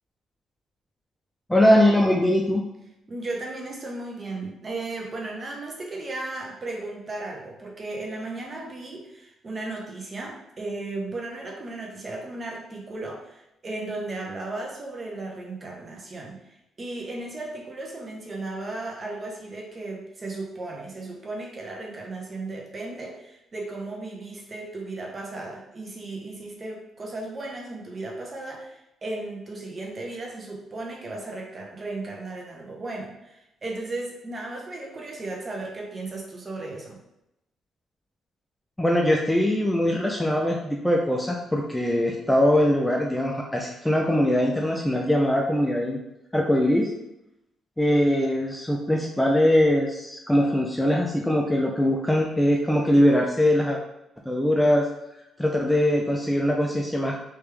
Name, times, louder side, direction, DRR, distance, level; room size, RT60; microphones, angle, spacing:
voice 1, 1.5-2.7 38.8-46.0 46.3-46.9 47.8-53.8 54.3-54.9 55.4-57.1, left 1 dB, 5° left, 0 dB, 0.5 m, -21 dB
voice 2, 3.1-37.0, right 2 dB, 35° right, 0 dB, 0.8 m, -35 dB
3.3 x 3.0 x 3.4 m, 0.88 s
cardioid pair, 90°, 0 cm